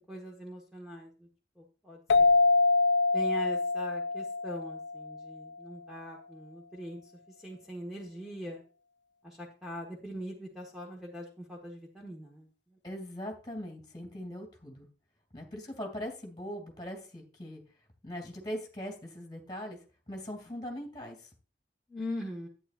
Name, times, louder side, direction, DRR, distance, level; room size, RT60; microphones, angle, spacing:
voice 1, 0.1-1.3 1.6-2.3 3.1-8.6 9.2-12.8 21.9-22.5, equal, ahead, -2 dB, 1.3 m, -42 dB
sound 1, 2.1-5.4, left 3 dB, 90° left, 0.4 m, -25 dB
voice 2, 12.8-14.9 15.3-17.6 18.0-19.8 20.1-21.2, equal, 25° left, 2 dB, 2.6 m, -40 dB
11.0 x 9.5 x 2.5 m, 0.36 s
head